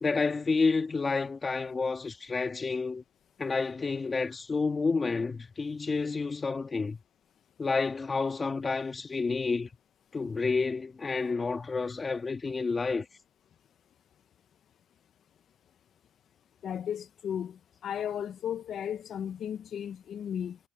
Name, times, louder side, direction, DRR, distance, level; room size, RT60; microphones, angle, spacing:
voice 1, 0.0-3.0 3.4-7.0 7.6-9.7 10.1-13.1, left 4 dB, 30° left, 2.0 m, -29 dB
voice 2, 16.6-20.6, left 9 dB, 65° left, 0.5 m, -35 dB
cardioid pair, 90°, 0 cm